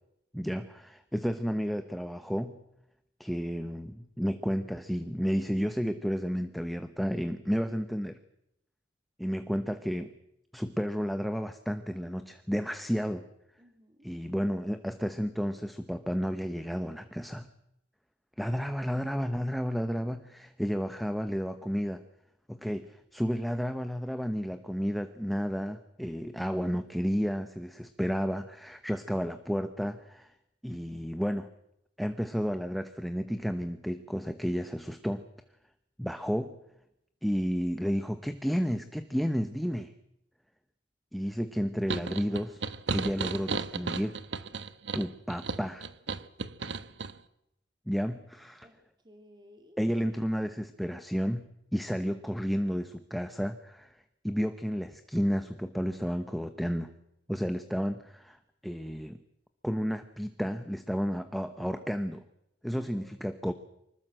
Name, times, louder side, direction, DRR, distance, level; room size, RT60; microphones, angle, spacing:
voice 1, 0.3-2.6 3.2-8.2 9.2-10.1 10.5-13.2 14.0-17.5 18.4-22.0 22.5-30.3 30.6-31.5 32.0-35.2 36.0-36.6 37.2-39.9 41.1-42.6 42.9-44.2 44.9-45.9 47.9-48.7 49.8-53.9 54.2-56.9 57.3-58.4 58.6-59.2 59.6-62.2 62.6-63.5, equal, ahead, 8 dB, 1.0 m, -32 dB
voice 2, 13.6-14.1 48.6-49.8 62.7-63.4, equal, 25° right, 4 dB, 2.5 m, -57 dB
sound 1, 41.9-47.1, right 4 dB, 70° right, 1.2 m, -34 dB
25.0 x 20.5 x 7.8 m, 0.82 s
head